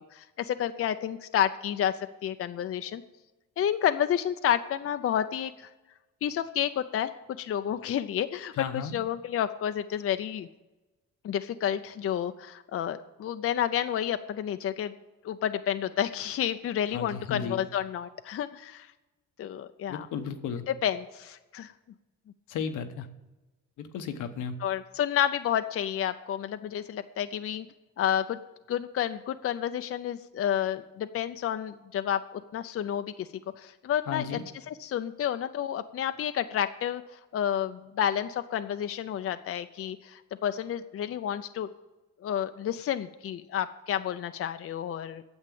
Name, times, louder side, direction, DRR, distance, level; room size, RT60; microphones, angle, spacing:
voice 1, 0.0-3.0 3.6-5.7 6.2-8.5 8.9-10.5 11.2-14.9 15.2-18.9 19.4-20.1 20.8-21.7 24.6-27.7 28.0-28.4 28.7-33.3 33.6-34.2 34.7-37.0 37.3-41.7 42.2-45.2, left 10 dB, 50° left, 9 dB, 0.5 m, -30 dB
voice 2, 8.5-9.0 16.9-17.6 19.9-20.7 22.5-23.1 23.8-24.6 34.1-34.4, left 7 dB, 80° left, 7 dB, 1.1 m, -34 dB
9.6 x 7.3 x 8.5 m, 1.1 s
cardioid pair, 90°, 30 cm